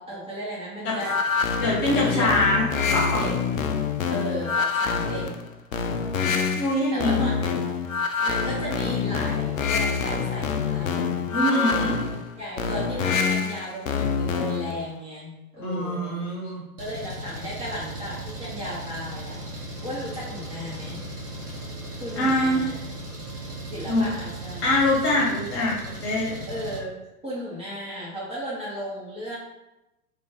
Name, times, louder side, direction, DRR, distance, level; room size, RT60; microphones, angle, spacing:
voice 1, 0.0-1.3 1.8-2.3 2.7-3.3 4.1-5.3 6.9-7.5 8.2-11.2 11.5-12.0 12.4-16.2 16.8-19.4 19.8-21.0 22.0-22.8 23.7-24.8 26.5-26.9 27.2-29.4, equal, 15° right, -8 dB, 0.8 m, -35 dB
sound 1, 1.0-14.8, left 5 dB, 60° left, 0.5 m, -26 dB
voice 2, 1.6-2.6 2.9-3.2 6.5-7.3 11.3-11.9 15.6-16.6 22.2-22.6 23.8-24.0 24.6-26.4, left 1 dB, 30° left, -4 dB, 1.1 m, -23 dB
Engine, 16.8-26.8, right 1 dB, 85° right, 1.1 m, -37 dB
3.0 x 2.4 x 3.7 m, 0.94 s
figure-of-eight pair, 105°, 45 cm